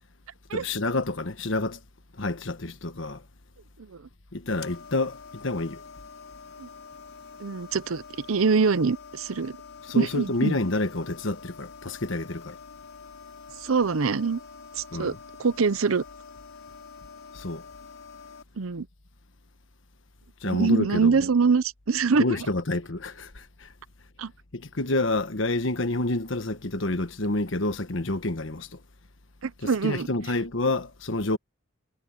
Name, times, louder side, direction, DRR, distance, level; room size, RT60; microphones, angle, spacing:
voice 1, 0.5-1.8 2.2-3.2 4.3-5.8 9.9-12.6 14.9-15.2 17.3-17.6 20.4-21.2 22.2-23.7 24.5-28.8 29.6-31.4, left 2 dB, 65° left, 1.4 m, -28 dB
sound 1, 4.5-18.4, left 5 dB, 85° left, 4.9 m, -46 dB
voice 2, 7.4-9.6 9.9-10.6 13.6-14.4 14.7-15.1 15.4-16.0 18.6-18.9 20.4-22.2 24.2-24.3 29.4-30.1, right 5 dB, 85° right, 0.7 m, -24 dB
head